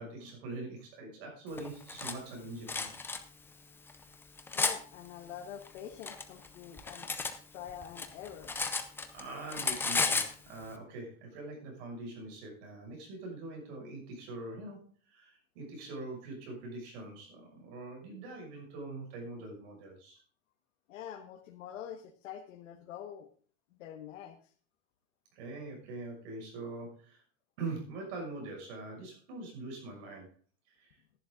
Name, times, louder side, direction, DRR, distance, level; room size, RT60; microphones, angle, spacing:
voice 1, 0.0-3.0 9.1-20.2 25.3-27.2 27.6-30.3 30.7-31.0, right 2 dB, 55° right, 0 dB, 6.4 m, -43 dB
Cutlery silverware, 1.6-2.2 2.7-3.2 3.9-4.8 5.7-7.4 7.7-9.2 9.5-10.3, left 4 dB, 5° left, 0.5 m, -33 dB
voice 2, 4.5-7.1 7.5-8.5 20.9-23.3 23.7-24.5, left 9 dB, 85° left, 3 dB, 1.6 m, -45 dB
12.5 x 11.0 x 3.8 m, 0.41 s
supercardioid pair, 165°, 37 cm